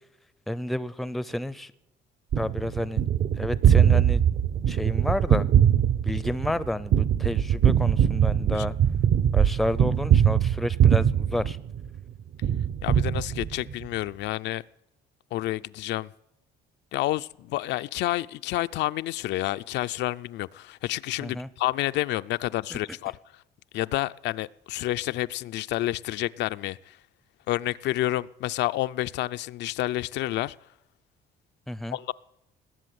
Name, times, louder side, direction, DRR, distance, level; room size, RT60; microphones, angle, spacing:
voice 1, 0.5-1.7 2.4-3.0 3.4-4.2 4.7-5.5 6.0-8.7 9.3-11.6 21.2-21.5 22.7-22.8 31.7-32.0, left 1 dB, ahead, 0.5 m, -30 dB
Gunshot gunfire, 2.3-12.0 12.4-13.8, right 9 dB, 55° right, 0.9 m, -22 dB
voice 2, 12.8-14.6 15.3-16.1 16.9-23.1 23.7-27.0 27.5-30.6 31.9-32.1, left 15 dB, 80° left, 0.5 m, -29 dB
19.5 x 7.7 x 9.4 m
cardioid pair, 145°, 18 cm